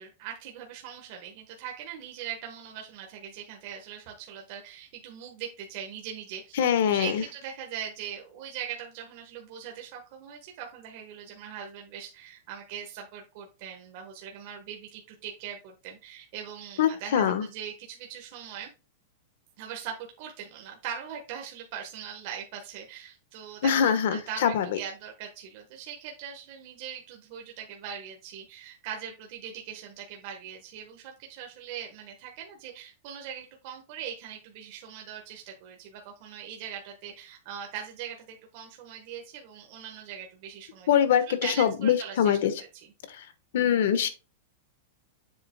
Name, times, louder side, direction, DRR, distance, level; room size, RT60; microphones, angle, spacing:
voice 1, 0.0-18.7 19.6-42.9, right 8 dB, 40° right, 1 dB, 1.2 m, -41 dB
voice 2, 6.6-7.2 16.8-17.4 23.6-24.6 40.9-42.5 43.2-43.3 43.5-44.1, left 9 dB, 65° left, 11 dB, 1.2 m, -23 dB
7.7 x 7.5 x 2.2 m, 0.30 s
supercardioid pair, 170°, 0 cm